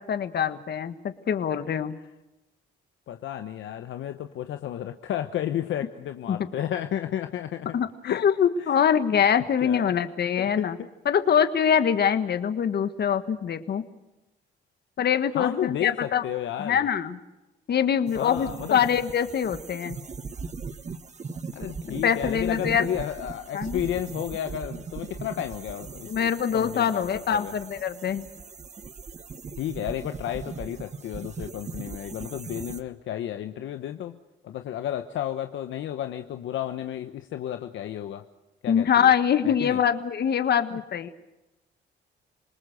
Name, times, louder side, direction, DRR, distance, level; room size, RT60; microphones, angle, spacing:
voice 1, 0.0-2.0 6.3-6.4 7.7-10.8 11.0-13.8 15.0-16.2 16.6-17.2 17.7-20.0 21.8-22.9 23.5-23.8 26.1-28.3 38.7-41.1, left 8 dB, 55° left, 10 dB, 1.5 m, -24 dB
voice 2, 3.1-7.8 8.0-8.2 8.6-8.7 9.6-9.9 10.4-10.9 15.3-16.9 18.1-18.8 21.5-27.5 29.6-34.2 34.4-38.2 38.6-39.1 39.4-39.8 40.7-40.8, left 11 dB, 75° left, 8 dB, 1.1 m, -32 dB
sound 1, 18.1-32.8, right 4 dB, 35° right, 1.4 m, -39 dB
27.5 x 19.5 x 6.5 m, 1.0 s
cardioid pair, 90°, 20 cm